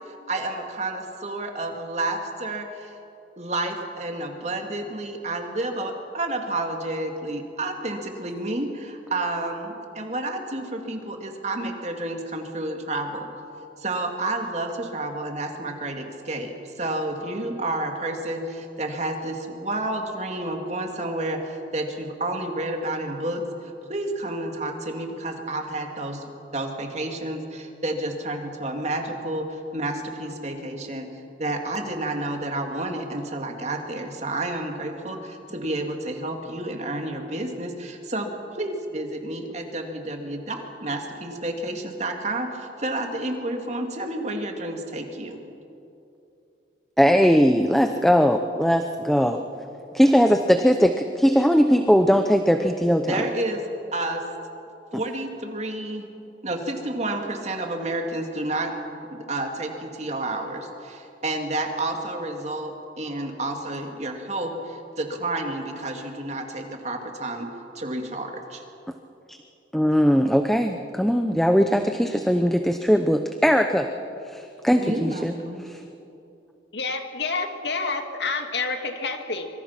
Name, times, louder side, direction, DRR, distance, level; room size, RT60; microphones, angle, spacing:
voice 1, 0.1-2.9 3.4-13.3 13.8-26.2 26.5-31.1 31.4-38.3 38.6-45.4 53.0-53.6 53.9-54.2 54.9-56.0 56.4-58.7 59.1-67.5 67.7-68.6 74.8-75.6, right 2 dB, 40° right, 3 dB, 2.4 m, -30 dB
voice 2, 47.0-49.5 49.9-53.2 69.3-69.4 69.7-73.9 74.3-75.3 75.6-75.8, equal, ahead, 6 dB, 0.7 m, -20 dB
voice 3, 76.7-79.5, left 4 dB, 75° left, 5 dB, 2.1 m, -28 dB
25.5 x 24.5 x 5.9 m, 2.8 s
head